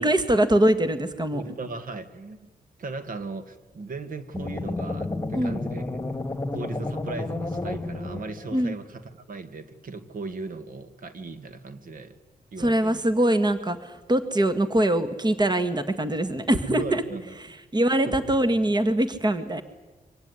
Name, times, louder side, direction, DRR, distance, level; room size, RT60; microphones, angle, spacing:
voice 1, 0.0-1.4 5.3-5.6 8.5-8.7 12.6-17.0 17.4-19.6, right 1 dB, 25° right, 11 dB, 1.8 m, -23 dB
voice 2, 1.3-2.5 2.8-5.8 6.1-6.2 6.5-12.2 12.5-13.0 16.6-17.4 17.8-18.2, right 3 dB, 60° right, 11 dB, 2.0 m, -37 dB
sound 1, 4.3-8.6, left 2 dB, 15° left, 2.5 m, -31 dB
24.5 x 17.5 x 9.8 m, 1.2 s
cardioid pair, 85°, 16 cm